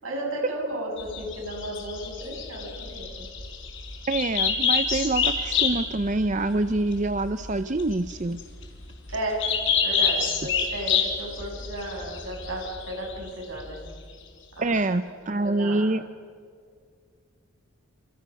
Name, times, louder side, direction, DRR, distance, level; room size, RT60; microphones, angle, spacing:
voice 1, 0.0-3.3 9.1-9.5 9.8-13.8 14.6-14.8 15.4-15.9, right 1 dB, 75° right, 0 dB, 8.0 m, -34 dB
sound 1, 1.0-13.9, left 6 dB, 60° left, 4.1 m, -28 dB
voice 2, 4.1-8.4 14.6-16.0, right 2 dB, 35° right, 10 dB, 0.6 m, -26 dB
29.5 x 27.0 x 5.4 m, 2.1 s
head